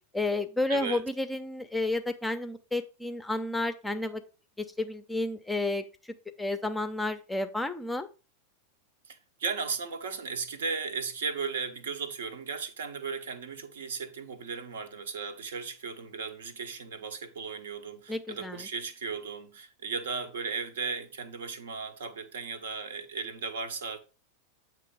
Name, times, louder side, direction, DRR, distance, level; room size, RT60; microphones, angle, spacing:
voice 1, 0.1-4.2 4.8-5.8 6.4-8.1 18.1-18.7, left 2 dB, 5° left, 0.5 m, -31 dB
voice 2, 0.7-1.0 9.1-24.0, right 5 dB, 60° right, 0.7 m, -36 dB
8.3 x 3.0 x 5.0 m
figure-of-eight pair, 90°, 0 cm